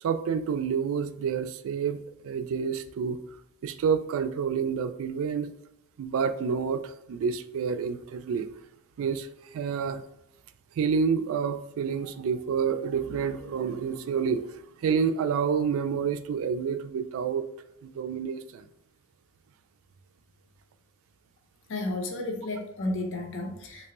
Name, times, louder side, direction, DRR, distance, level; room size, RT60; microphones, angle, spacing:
voice 1, 0.0-3.2 3.6-5.5 6.0-8.5 9.0-10.0 10.8-17.5 17.8-18.7, right 6 dB, 65° right, 11 dB, 0.3 m, -29 dB
voice 2, 21.7-23.9, left 2 dB, 60° left, 3 dB, 0.6 m, -32 dB
3.4 x 2.9 x 2.9 m, 0.82 s
head